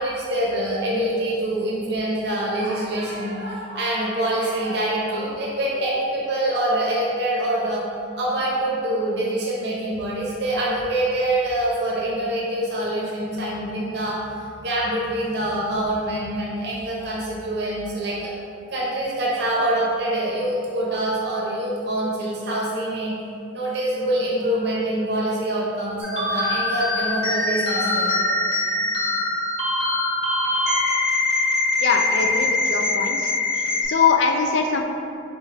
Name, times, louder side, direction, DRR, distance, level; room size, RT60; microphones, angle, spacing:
voice 1, 0.0-7.8 8.2-18.3 18.7-23.1 23.5-28.1 28.8-28.9, right 1 dB, 55° right, -5 dB, 0.9 m, -25 dB
sound 1, 26.0-33.8, left 2 dB, 30° right, 1.1 m, -23 dB
voice 2, 31.8-33.3 33.8-34.8, left 5 dB, 65° left, 4 dB, 0.4 m, -22 dB
4.2 x 3.5 x 3.4 m, 2.5 s
head